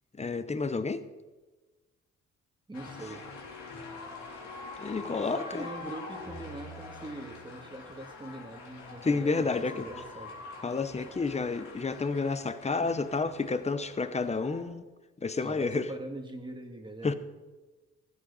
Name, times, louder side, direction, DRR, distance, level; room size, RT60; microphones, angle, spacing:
voice 1, 0.2-1.0 4.8-5.6 9.0-9.9 10.6-14.8 15.2-15.9 17.0-17.1, left 4 dB, 20° left, 12 dB, 0.9 m, -30 dB
sound 1, 2.7-14.6, left 3 dB, 70° left, 3.5 m, -45 dB
voice 2, 2.7-3.2 5.3-10.4 15.3-17.1, right 1 dB, 15° right, 4 dB, 2.0 m, -42 dB
16.0 x 12.5 x 4.1 m, 1.2 s
cardioid pair, 90°, 30 cm